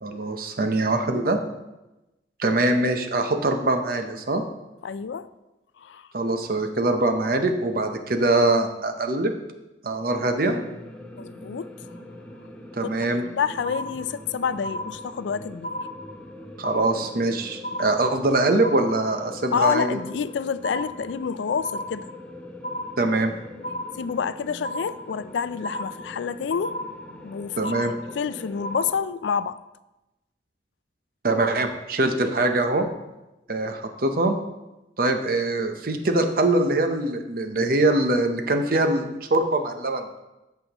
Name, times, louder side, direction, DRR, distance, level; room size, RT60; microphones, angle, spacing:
voice 1, 0.0-1.4 2.4-4.4 6.1-9.3 9.8-10.6 12.7-13.2 16.6-20.0 23.0-23.3 27.6-27.9 31.2-32.9 33.5-34.4 35.0-40.1, right 2 dB, 50° right, 0.8 m, -23 dB
voice 2, 4.8-5.3 5.8-6.1 11.2-11.7 12.8-12.9 13.3-15.7 19.5-22.1 24.0-26.8 27.2-27.7 28.1-29.6, left 6 dB, 80° left, 0.4 m, -28 dB
sound 1, 10.1-29.0, left 1 dB, 5° left, 0.7 m, -43 dB
sound 2, 13.6-14.3 14.6-15.3 15.6-16.3 16.6-17.3 17.6-18.3 18.6-19.3 19.6-20.3 20.6-21.3 21.6-22.3 22.6-23.3 23.6-24.3 24.6-25.3 25.6-26.3 26.6-27.3 27.6-28.3 28.6-28.9, left 1 dB, 50° left, 0.8 m, -34 dB
13.5 x 5.7 x 3.0 m
head